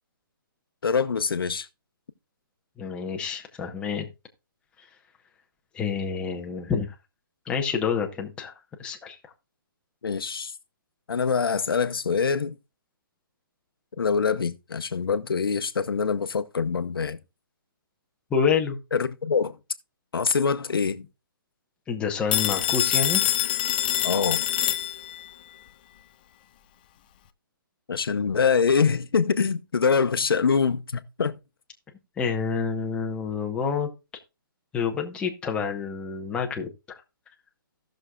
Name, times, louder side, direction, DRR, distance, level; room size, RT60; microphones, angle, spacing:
voice 1, 0.8-1.7 10.0-10.5 11.1-12.5 14.0-17.2 18.9-19.6 20.1-21.1 24.0-24.4 27.9-31.3, left 5 dB, 85° left, 0.9 m, -24 dB
voice 2, 2.8-4.1 5.7-6.9 7.5-8.5 8.8-9.2 18.3-18.8 21.9-23.2 32.2-33.9 34.7-36.7, left 6 dB, 10° left, 0.9 m, -28 dB
Telephone, 22.3-25.3, left 13 dB, 25° left, 0.4 m, -25 dB
17.5 x 6.4 x 2.3 m
hypercardioid pair, 160°, 12 cm